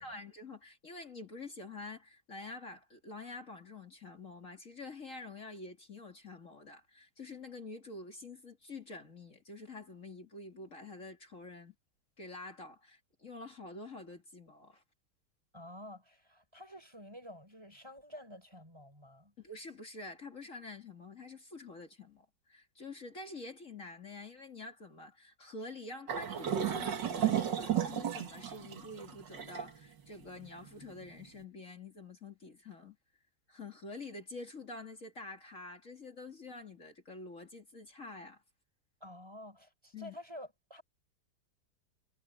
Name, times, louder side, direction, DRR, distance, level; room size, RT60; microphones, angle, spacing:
voice 1, 0.0-11.7 12.2-14.8 19.4-33.0 33.5-38.4 39.9-40.2, left 3 dB, 45° left, 2.9 m, -47 dB
voice 2, 15.5-19.3 39.0-40.8, left 1 dB, 15° right, 4.2 m, -50 dB
sound 1, 26.1-31.3, right 9 dB, 85° right, 2.3 m, -34 dB
omnidirectional pair, 1.9 m